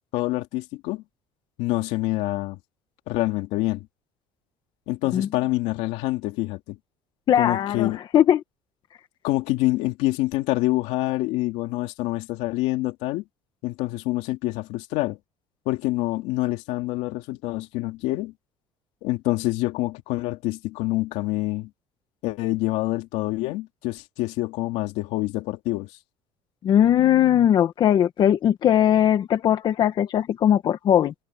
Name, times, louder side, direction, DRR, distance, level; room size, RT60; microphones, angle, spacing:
voice 1, 0.1-1.0 1.6-2.6 3.1-3.9 4.9-6.8 7.3-8.0 9.2-13.2 13.6-15.2 15.7-18.3 19.0-21.7 22.2-25.9, left 18 dB, 75° left, 2.6 m, -26 dB
voice 2, 7.3-8.4 26.6-31.1, left 10 dB, 40° left, 1.5 m, -19 dB
cardioid pair, 145°, 11 cm